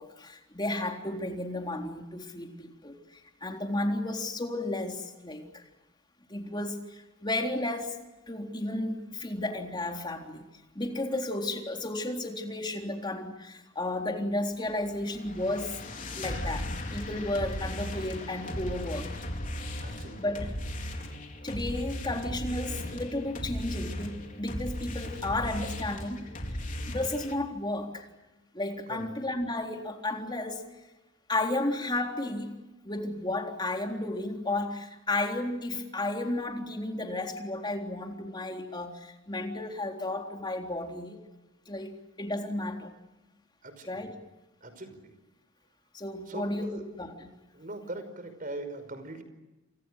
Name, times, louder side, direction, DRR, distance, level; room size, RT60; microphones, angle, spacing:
voice 1, 0.0-5.6 6.3-10.5 10.8-15.8 16.2-19.1 20.2-20.5 21.4-26.2 26.9-28.1 28.5-30.7 31.3-32.5 32.8-41.2 41.7-42.9 43.8-44.1 45.9-47.3, left 2 dB, 25° left, 3.8 m, -33 dB
sound 1, 14.7-27.3, left 1 dB, 40° left, 4.3 m, -37 dB
voice 2, 19.8-20.2 28.9-29.1 43.6-43.9 44.6-45.1 46.3-46.8 47.5-49.2, right 2 dB, 45° right, 5.5 m, -41 dB
29.5 x 27.5 x 6.5 m
head